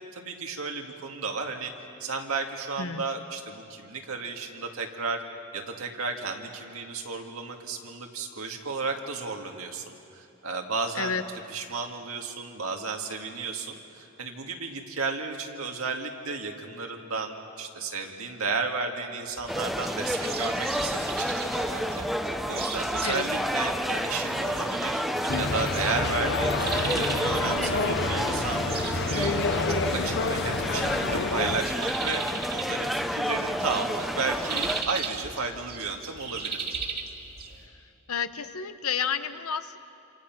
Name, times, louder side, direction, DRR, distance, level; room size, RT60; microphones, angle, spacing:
voice 1, 0.1-1.7 2.0-5.2 5.5-11.2 11.5-22.0 22.5-25.0 25.4-29.4 29.7-32.2 32.5-36.7, right 4 dB, 80° right, 3 dB, 2.2 m, -33 dB
sound 1, 19.3-37.6, right 5 dB, 45° right, 2.2 m, -38 dB
sound 2, 19.5-34.8, equal, ahead, 0.9 m, -30 dB
sound 3, 25.3-31.6, left 3 dB, 55° left, 1.0 m, -29 dB
voice 2, 38.1-39.8, left 6 dB, 85° left, 10 dB, 1.1 m, -30 dB
27.5 x 27.0 x 6.1 m, 2.7 s
head